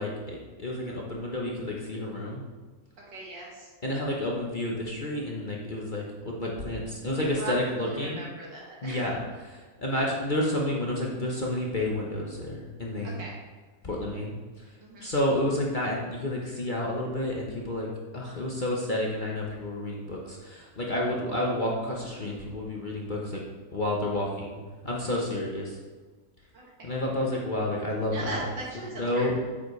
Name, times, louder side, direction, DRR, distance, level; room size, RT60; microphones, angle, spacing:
voice 1, 0.0-2.4 3.8-8.2 8.8-13.2 13.8-14.3 15.0-23.4 23.7-24.6 24.8-25.8 26.8-28.5 29.0-29.4, left 1 dB, 35° left, -3 dB, 1.0 m, -30 dB
voice 2, 3.1-3.7 7.2-9.1 13.0-13.4 14.8-15.1 26.8-26.9 28.1-29.4, right 2 dB, 85° right, -4 dB, 2.7 m, -39 dB
8.6 x 7.9 x 3.3 m, 1.3 s
omnidirectional pair, 1.9 m